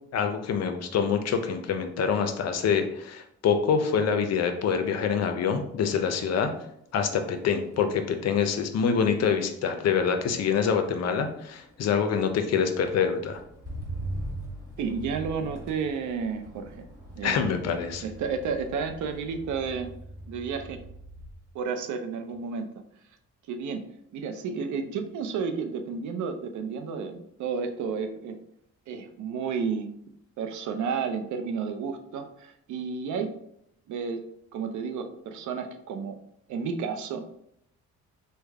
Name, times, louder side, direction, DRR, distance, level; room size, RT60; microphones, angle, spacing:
voice 1, 0.1-6.5 6.9-13.4 17.2-18.0, left 6 dB, 60° left, 7 dB, 0.6 m, -26 dB
Motor vehicle (road), 6.4-6.7 7.1-21.5 21.9-22.3, right 1 dB, 10° right, 1.4 m, -42 dB
voice 2, 14.8-16.9 17.2-17.4 18.0-19.9 20.3-20.8 21.5-22.7 23.5-23.8 24.1-28.4 28.9-29.9 30.4-33.3 33.9-34.2 34.5-36.2 36.5-37.2, right 5 dB, 75° right, 7 dB, 0.5 m, -31 dB
3.3 x 2.2 x 3.4 m, 0.73 s
cardioid pair, 90°, 30 cm